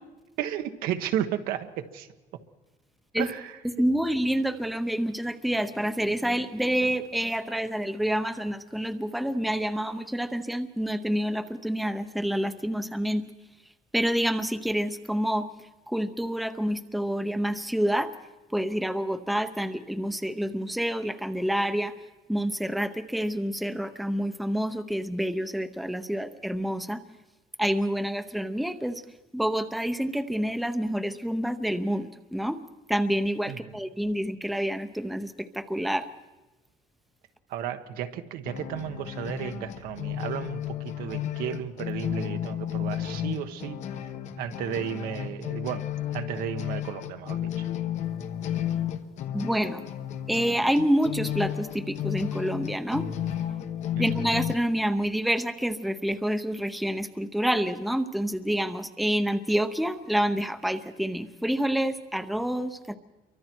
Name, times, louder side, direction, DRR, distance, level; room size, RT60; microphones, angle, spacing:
voice 1, 0.4-2.1 3.2-3.6 33.5-33.7 37.5-43.8 44.4-45.9 46.1-47.7, right 10 dB, 80° right, 7 dB, 1.4 m, -33 dB
voice 2, 3.8-13.2 13.9-15.5 15.9-18.1 18.5-21.9 22.3-27.0 27.6-29.0 29.3-32.6 32.9-36.1 49.3-49.8 50.3-53.1 54.0-63.0, equal, ahead, 9 dB, 0.8 m, -28 dB
sound 1, 38.5-54.5, left 10 dB, 55° left, 1.1 m, -33 dB
28.5 x 24.0 x 4.6 m, 1.1 s
cardioid pair, 155°, 15 cm